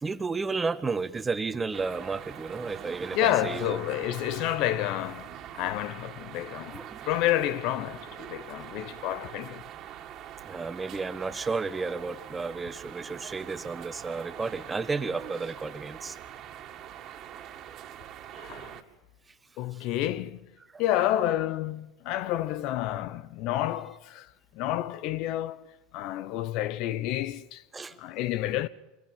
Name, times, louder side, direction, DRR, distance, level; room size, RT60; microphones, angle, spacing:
voice 1, 0.0-3.8 6.7-7.0 10.4-16.2 17.4-17.5 19.7-19.8 20.7-20.8 27.7-28.0, right 4 dB, 20° right, 1.3 m, -32 dB
sound 1, 1.7-18.8, right 10 dB, 45° right, 2.2 m, -43 dB
voice 2, 3.1-5.3 5.5-9.6 18.4-18.7 19.6-20.4 20.8-24.3 24.6-27.6 28.0-28.7, left 13 dB, 55° left, 0.9 m, -29 dB
25.0 x 21.0 x 7.5 m
hypercardioid pair, 85°, 0 cm